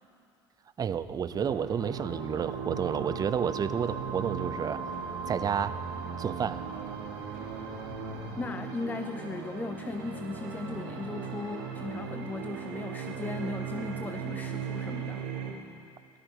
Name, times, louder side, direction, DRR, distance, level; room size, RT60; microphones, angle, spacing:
voice 1, 0.8-4.8 5.3-5.8 6.2-6.6, right 7 dB, 30° right, 14 dB, 0.6 m, -30 dB
sound 1, 0.9-8.3, left 5 dB, 50° left, 3.0 m, -51 dB
sound 2, 1.3-15.5, right 6 dB, 75° right, 2.0 m, -37 dB
voice 2, 8.4-15.3, left 3 dB, 15° left, 9 dB, 0.5 m, -37 dB
18.0 x 13.0 x 4.6 m, 2.4 s
supercardioid pair, 90°, 13 cm